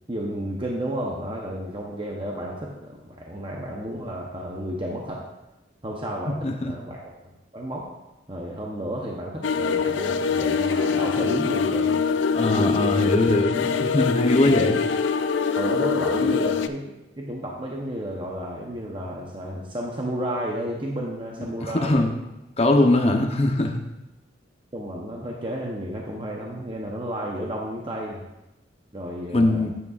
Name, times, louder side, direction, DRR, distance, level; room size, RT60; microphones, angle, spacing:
voice 1, 0.1-5.2 5.8-7.8 8.3-12.0 12.4-12.9 13.6-14.0 15.5-16.8 17.2-22.0 24.7-28.2 28.9-29.7, equal, 25° right, -2 dB, 0.8 m, -32 dB
voice 2, 6.4-6.7 12.3-14.8 16.2-16.3 21.6-22.1 22.6-23.8 29.3-29.7, left 1 dB, 30° left, 3 dB, 0.7 m, -21 dB
sound 1, 9.4-16.7, left 5 dB, 75° left, 0.4 m, -23 dB
9.4 x 8.3 x 2.4 m, 0.97 s
head